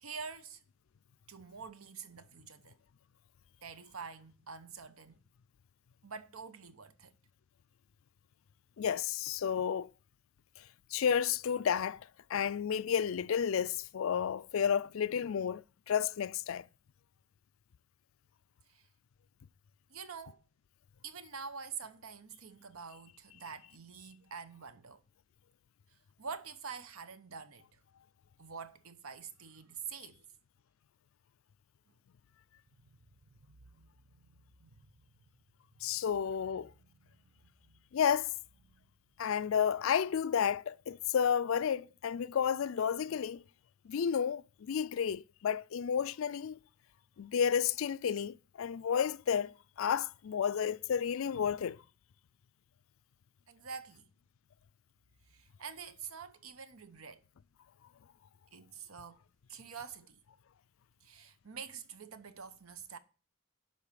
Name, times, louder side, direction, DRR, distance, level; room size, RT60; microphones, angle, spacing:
voice 1, 0.0-0.6 1.3-2.8 3.6-5.1 6.0-7.1 18.7-18.9 19.9-20.4 21.0-25.0 26.2-27.7 28.4-30.2 33.2-33.9 34.6-34.9 35.8-35.9 36.8-37.3 37.6-37.8 38.7-38.8 53.5-54.1 55.3-57.2 58.5-59.2 59.5-60.2 61.0-63.0, right 6 dB, 85° right, 0.9 m, -47 dB
voice 2, 8.8-9.9 10.9-16.6 35.8-36.7 37.9-38.3 39.2-43.4 43.8-46.6 47.2-51.8, left 7 dB, 70° left, 0.4 m, -31 dB
11.5 x 4.1 x 7.4 m
head